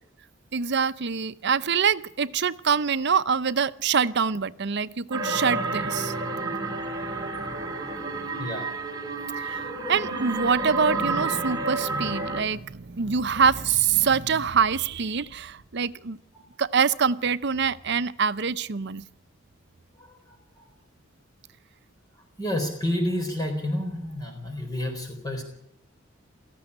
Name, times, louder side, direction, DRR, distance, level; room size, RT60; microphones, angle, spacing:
voice 1, 0.5-6.1 9.3-16.2 16.6-19.1, right 6 dB, 60° right, 14 dB, 0.7 m, -25 dB
sound 1, 5.1-12.4, right 3 dB, 20° right, 2.8 m, -30 dB
voice 2, 8.4-8.7 9.6-9.7 16.3-16.4 20.0-20.7 22.4-25.4, left 1 dB, 20° left, 3 dB, 4.1 m, -30 dB
18.0 x 14.5 x 9.9 m, 0.72 s
head